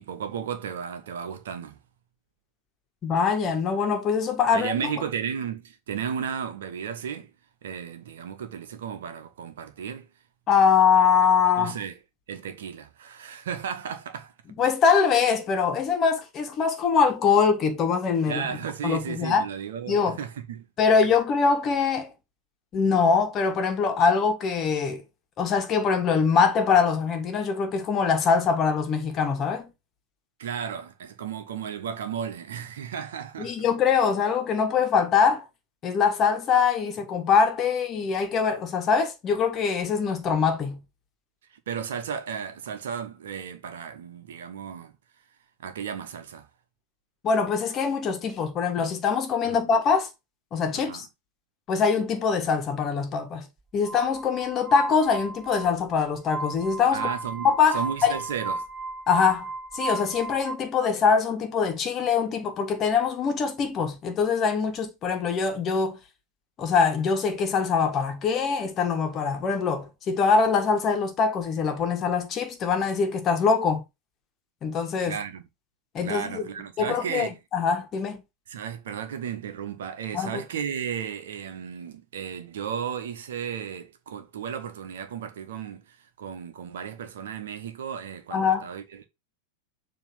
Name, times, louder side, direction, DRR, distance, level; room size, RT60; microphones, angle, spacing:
voice 1, 0.0-1.8 4.5-7.3 7.6-10.1 11.6-12.0 12.3-14.3 18.3-20.7 30.4-33.5 41.5-44.9 45.6-46.5 49.4-49.7 50.7-51.0 56.9-58.7 75.0-75.4 76.0-77.4 78.5-89.1, right 7 dB, 60° right, 1.1 m, -34 dB
voice 2, 3.0-4.7 10.5-11.8 14.6-18.5 18.8-19.4 19.9-20.2 20.8-22.1 22.7-25.0 25.4-29.7 33.4-35.5 35.8-40.8 47.2-50.1 50.5-51.1 51.7-53.5 53.7-57.1 57.4-58.2 59.1-66.0 66.6-73.8 74.6-75.2 75.9-76.5 76.8-78.2 80.1-80.4 88.3-88.7, left 6 dB, 30° left, 1.6 m, -23 dB
Glass, 53.8-60.5, right 3 dB, 25° right, 4.7 m, -34 dB
7.2 x 3.1 x 5.7 m
figure-of-eight pair, 90°, 0 cm